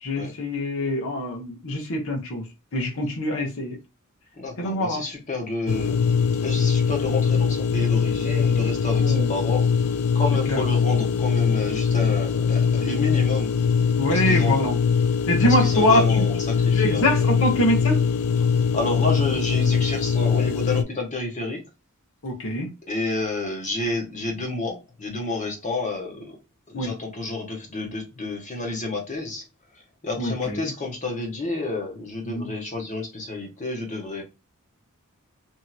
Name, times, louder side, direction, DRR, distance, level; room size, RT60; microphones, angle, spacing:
voice 1, 0.0-2.4 2.7-3.8 4.6-5.0 8.9-9.3 10.5-10.6 14.0-14.8 15.3-16.0 16.7-18.0 22.2-22.7 26.7-26.9 30.2-30.7 32.2-32.5, left 1 dB, 65° left, 1.1 m, -24 dB
voice 2, 4.4-6.0 6.4-9.7 10.1-13.5 14.1-14.8 15.4-17.6 18.7-21.6 22.9-26.3 26.7-29.4 30.0-34.2, left 2 dB, 35° left, 1.2 m, -30 dB
sound 1, 5.7-20.8, left 6 dB, 80° left, 0.3 m, -22 dB
2.9 x 2.7 x 2.3 m
head